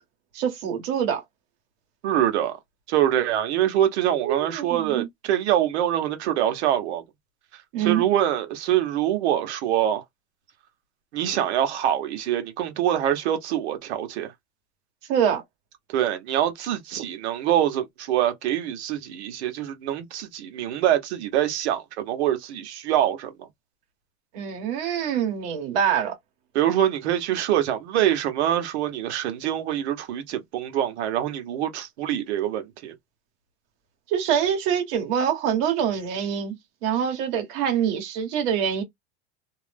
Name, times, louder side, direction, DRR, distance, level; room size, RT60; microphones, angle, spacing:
voice 1, 0.3-1.2 4.0-5.1 7.7-8.0 15.1-15.4 24.3-26.1 34.1-36.6 36.8-38.8, right 8 dB, 55° right, 1.3 m, -25 dB
voice 2, 2.0-2.5 2.9-7.0 7.8-10.0 11.1-14.3 15.9-23.5 26.5-32.9, right 11 dB, 80° right, 1.0 m, -24 dB
2.7 x 2.0 x 3.3 m
supercardioid pair, 160°, 33 cm